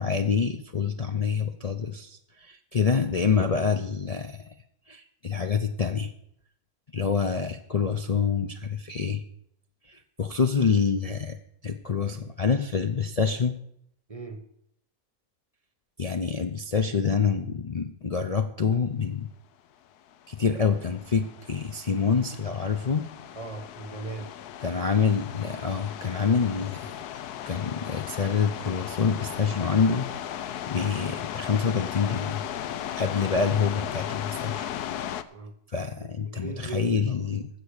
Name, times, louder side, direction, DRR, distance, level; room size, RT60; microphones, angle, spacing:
voice 1, 0.0-4.5 4.9-6.1 6.9-9.2 9.9-11.4 11.6-13.6 16.0-19.3 20.3-23.1 24.6-26.9 27.5-32.4 33.0-34.7 35.7-37.5, left 6 dB, 60° left, 0.4 m, -26 dB
voice 2, 14.1-14.4 23.3-24.3 35.3-35.5 36.0-37.3, right 4 dB, 30° right, 0.8 m, -38 dB
sound 1, 20.1-35.2, left 10 dB, 80° left, 1.2 m, -36 dB
15.5 x 6.5 x 6.6 m
omnidirectional pair, 1.7 m